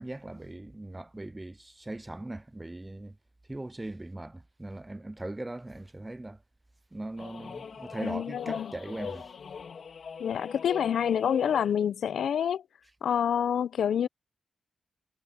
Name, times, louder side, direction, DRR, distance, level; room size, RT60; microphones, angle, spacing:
voice 1, 0.0-3.2 3.5-6.4 6.9-9.3, right 2 dB, 10° right, 0.3 m, -40 dB
sound 1, 7.2-11.8, left 6 dB, 55° left, 1.7 m, -41 dB
voice 2, 8.0-8.7 10.2-12.6 13.0-14.1, left 8 dB, 80° left, 0.5 m, -27 dB
wide cardioid pair, 145°, 0 cm